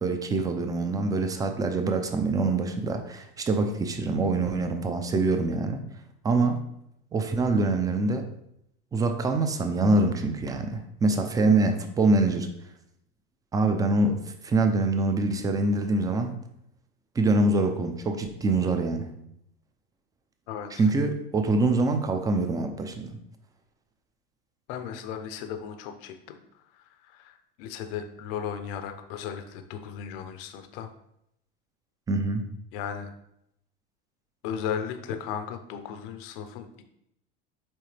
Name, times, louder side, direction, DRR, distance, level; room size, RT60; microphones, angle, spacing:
voice 1, 0.0-5.8 6.2-6.6 7.1-8.3 8.9-12.5 13.5-14.2 14.4-16.3 17.2-19.1 20.8-23.2 32.1-32.5, right 3 dB, 10° right, 6 dB, 0.5 m, -25 dB
voice 2, 20.5-20.9 24.7-30.9 32.7-33.1 34.4-36.8, left 8 dB, 70° left, 7 dB, 0.8 m, -36 dB
8.7 x 3.3 x 3.3 m, 0.77 s
supercardioid pair, 150°, 29 cm